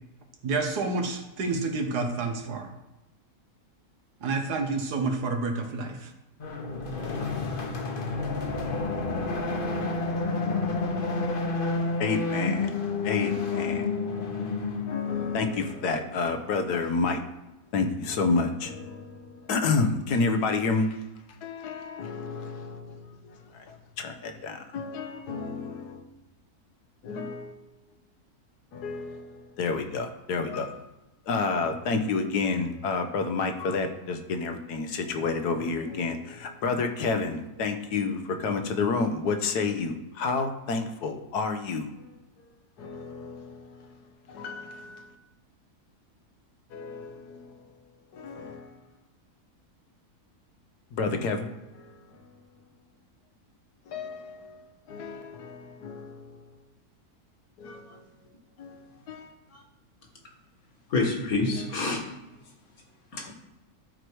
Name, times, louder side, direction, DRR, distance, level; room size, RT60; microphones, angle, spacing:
voice 1, 0.4-2.7 4.2-6.1, right 3 dB, 90° right, 1.8 m, -29 dB
sound 1, 6.4-15.6, left 3 dB, 40° left, 1.0 m, -29 dB
voice 2, 12.0-12.7 13.0-13.9 14.9-17.2 17.7-21.1 21.4-26.0 27.0-27.6 28.7-30.9 31.3-42.1 42.8-43.9 44.3-45.1 46.7-47.6 48.1-48.8 50.9-52.3 53.9-56.5 57.6-58.0 58.6-59.3 63.3-63.4, left 4 dB, 85° left, 1.5 m, -30 dB
voice 3, 60.9-62.0 63.1-63.3, left 3 dB, 65° left, 2.1 m, -28 dB
12.0 x 4.7 x 4.7 m
omnidirectional pair, 1.7 m